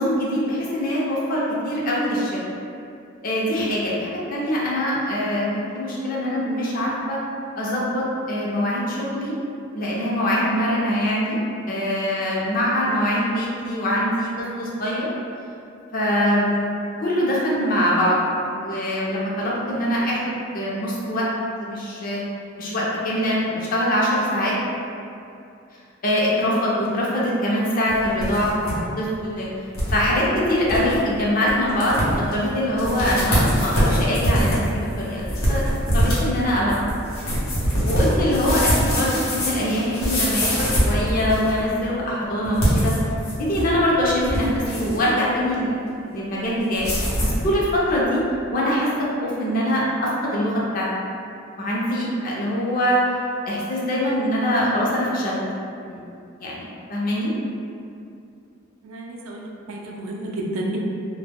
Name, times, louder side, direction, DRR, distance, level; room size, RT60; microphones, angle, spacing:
voice 1, 0.0-2.4 3.2-7.2 7.6-9.3 9.7-11.4 11.7-15.1 15.9-16.6 17.0-18.2 18.5-21.3 21.6-22.2 22.6-24.5 26.0-28.7 29.0-29.5 29.9-35.6 35.9-36.7 37.8-42.9 43.4-46.9 47.2-48.2 48.5-48.9 49.2-50.9 51.6-53.0 53.5-55.4 55.8-56.0 56.4-56.6 56.9-57.3, equal, 40° left, -5 dB, 0.5 m, -23 dB
sound 1, 27.9-28.7 29.1-29.2 29.7-30.0 30.4-30.5 30.7-31.0 31.5-31.6 31.8-32.3 32.8-41.6 42.5-43.7 44.1-45.0 46.7-47.4, equal, 85° left, 0.9 m, -23 dB
voice 2, 58.8-60.8, right 1 dB, 85° right, -2 dB, 0.4 m, -31 dB
2.1 x 2.1 x 3.4 m, 2.6 s
head